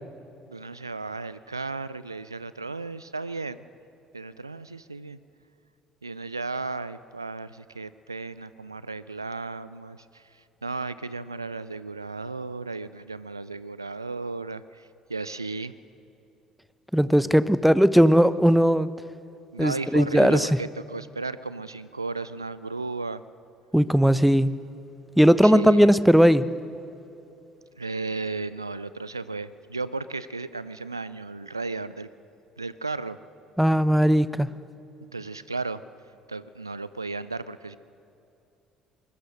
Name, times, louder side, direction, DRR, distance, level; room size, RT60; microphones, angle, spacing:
voice 1, 0.5-3.6 4.1-5.2 6.0-15.7 19.5-23.2 25.4-25.9 27.8-32.1 32.6-33.2 35.1-35.8 36.3-37.8, right 3 dB, 85° right, 16 dB, 0.4 m, -34 dB
voice 2, 16.9-18.9 19.6-20.5 23.7-24.6 25.2-26.5 33.6-34.5, equal, ahead, 16 dB, 0.8 m, -18 dB
23.5 x 21.0 x 6.4 m, 2.8 s
figure-of-eight pair, 55°, 2 cm